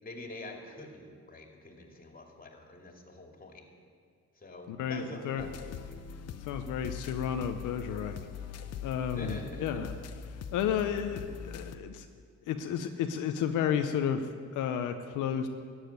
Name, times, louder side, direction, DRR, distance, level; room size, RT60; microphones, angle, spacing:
voice 1, 0.0-3.6 4.4-5.6 5.9-6.0 9.1-9.8, left 2 dB, 30° left, 2 dB, 2.5 m, -45 dB
voice 2, 4.7-5.5 6.4-8.2 8.8-9.9 10.5-12.1 12.5-15.5, left 8 dB, 90° left, 7 dB, 0.8 m, -32 dB
sound 1, 5.4-11.8, left 7 dB, 55° left, 0.8 m, -42 dB
14.0 x 7.5 x 9.4 m, 2.1 s
cardioid pair, 90°, 30 cm